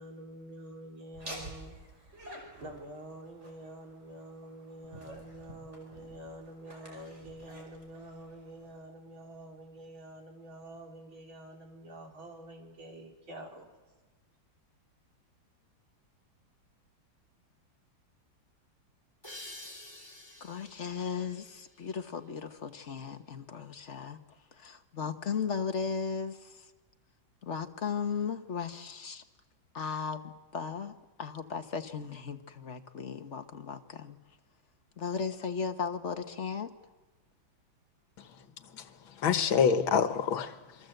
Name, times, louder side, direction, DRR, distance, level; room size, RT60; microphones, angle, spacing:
voice 1, 0.0-1.8 2.6-13.6, right 1 dB, 75° right, 4.6 m, -47 dB
Laughter, 1.1-8.8, right 1 dB, 35° right, 5.5 m, -49 dB
sound 1, 19.2-22.6, left 1 dB, 10° left, 4.7 m, -50 dB
voice 2, 20.4-24.2 24.6-26.6 27.4-29.2 29.7-30.9 31.2-34.2 35.0-36.7 39.3-39.5, left 6 dB, 40° left, 1.4 m, -36 dB
voice 3, 38.7-40.9, left 7 dB, 75° left, 2.1 m, -28 dB
27.5 x 24.5 x 8.0 m
omnidirectional pair, 2.2 m